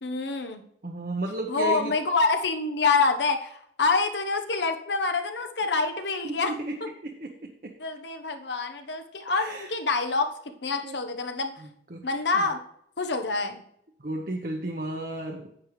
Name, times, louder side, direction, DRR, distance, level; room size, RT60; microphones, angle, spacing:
voice 1, 0.0-0.6 1.5-6.5 6.8-6.9 7.8-10.3 10.6-11.5 12.0-12.6 13.0-13.6, left 4 dB, 85° left, 6 dB, 1.0 m, -26 dB
voice 2, 0.8-1.9 6.2-6.8 7.0-7.7 9.3-9.7 10.8-10.9 11.9-12.1 12.3-12.4 14.0-15.6, right 1 dB, 50° right, 2 dB, 0.9 m, -33 dB
9.9 x 8.4 x 3.2 m, 0.73 s
head